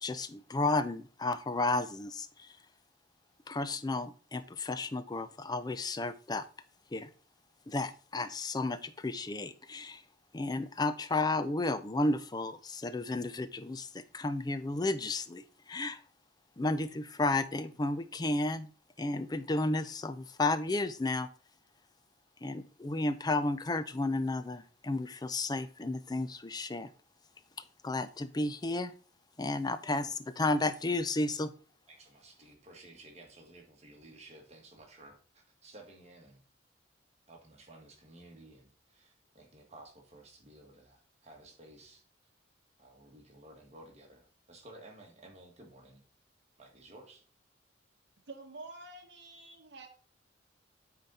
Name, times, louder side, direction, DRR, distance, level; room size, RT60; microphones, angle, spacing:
voice 1, 0.0-2.5 3.5-6.4 6.9-7.1 7.7-10.0 10.3-16.0 16.6-18.7 19.0-21.3 22.4-26.9 27.8-28.9 29.4-31.5, left 2 dB, 20° left, 12 dB, 0.4 m, -32 dB
voice 2, 31.9-36.4 37.3-42.0 42.8-46.0 46.6-47.2, right 2 dB, 35° right, 1 dB, 1.8 m, -54 dB
voice 3, 48.3-49.9, right 3 dB, 60° right, 1 dB, 1.1 m, -48 dB
9.0 x 3.9 x 4.1 m, 0.40 s
head